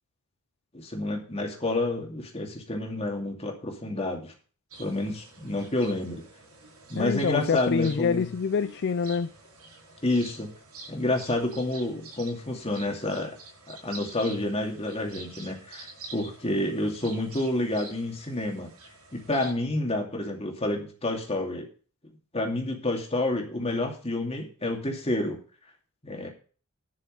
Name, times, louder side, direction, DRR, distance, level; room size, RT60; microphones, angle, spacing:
voice 1, 0.7-4.3 4.8-6.2 6.9-8.3 10.0-10.5 10.9-13.4 13.7-18.7 19.1-21.7 22.3-25.4 26.0-26.3, left 1 dB, 30° left, 2.5 m, -29 dB
sound 1, 4.7-19.5, right 3 dB, 85° right, 6.7 m, -48 dB
voice 2, 7.0-9.3, left 6 dB, 50° left, 0.4 m, -26 dB
10.5 x 6.8 x 6.4 m
head